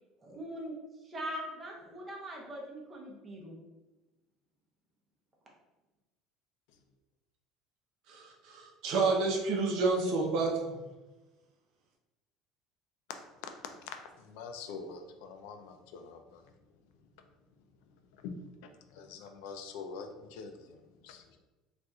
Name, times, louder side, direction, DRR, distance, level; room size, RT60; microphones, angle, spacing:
voice 1, 0.2-0.7 1.0-3.6, equal, 20° right, -2 dB, 0.7 m, -41 dB
voice 2, 8.1-10.8, right 3 dB, 60° right, 0 dB, 0.7 m, -29 dB
voice 3, 13.8-16.4 18.2-18.4 18.9-20.8 21.0-21.4, left 5 dB, 85° left, 6 dB, 0.4 m, -45 dB
4.1 x 2.5 x 2.3 m, 1.1 s
cardioid pair, 150°, 0 cm